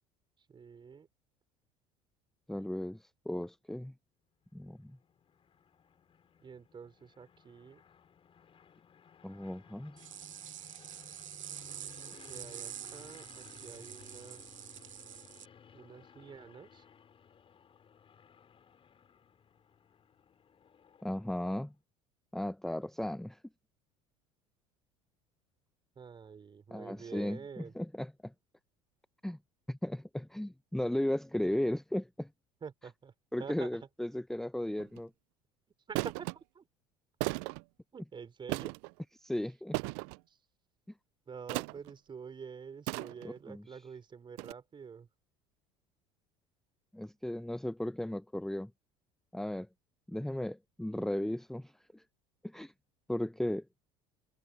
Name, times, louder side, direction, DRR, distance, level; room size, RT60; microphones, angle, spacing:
voice 1, 0.5-1.1 6.4-7.8 12.3-14.4 15.7-16.8 25.9-27.7 32.6-33.1 33.4-33.7 35.9-36.3 36.5-36.7 37.9-38.7 40.3-40.4 41.3-45.1, right 6 dB, 30° right, 4.8 m, -47 dB
voice 2, 2.5-3.9 4.5-5.0 9.2-10.0 21.0-21.7 22.3-23.4 26.7-28.3 29.2-29.4 29.7-32.3 33.3-35.1 39.2-39.8 43.2-43.8 46.9-48.7 49.3-49.7 50.1-52.0 52.4-52.7 53.1-53.7, left 1 dB, ahead, 0.8 m, -36 dB
sound 1, 4.4-21.6, left 7 dB, 35° left, 4.9 m, -58 dB
sound 2, 10.0-15.5, right 12 dB, 75° right, 1.5 m, -47 dB
sound 3, 34.8-35.0 36.0-36.4 37.2-37.6 38.5-38.9 39.7-40.2 41.5-41.9 42.9-43.4 44.4-44.5, right 39 dB, 60° right, 0.4 m, -36 dB
figure-of-eight pair, 65°, 17 cm